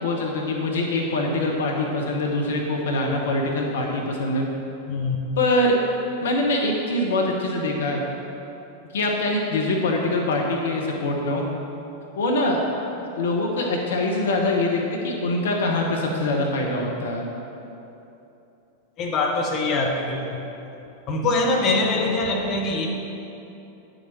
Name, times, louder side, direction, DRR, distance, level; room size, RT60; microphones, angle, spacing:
voice 1, 0.0-4.4 5.4-8.0 8.9-11.4 12.2-12.6 13.2-17.2, left 2 dB, 60° left, 0 dB, 1.0 m, -24 dB
voice 2, 4.9-5.2 19.0-20.4 21.1-22.9, left 2 dB, 35° left, 0 dB, 1.1 m, -23 dB
10.0 x 6.6 x 4.5 m, 2.9 s
figure-of-eight pair, 90°, 0 cm